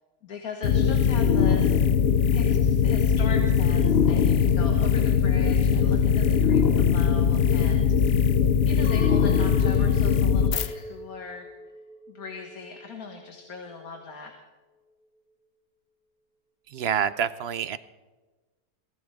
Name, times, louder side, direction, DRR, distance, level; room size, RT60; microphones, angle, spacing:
voice 1, 0.2-1.8 2.3-8.4 8.7-11.5 12.1-14.3, left 4 dB, 75° left, 3 dB, 2.1 m, -40 dB
sound 1, 0.6-10.7, left 7 dB, 55° left, 0.8 m, -21 dB
Chink clink, 8.8-14.0, left 2 dB, 75° right, 2.8 m, -39 dB
voice 2, 16.7-17.8, right 8 dB, 55° right, 15 dB, 0.7 m, -27 dB
23.5 x 17.0 x 3.6 m, 1.2 s
omnidirectional pair, 1.6 m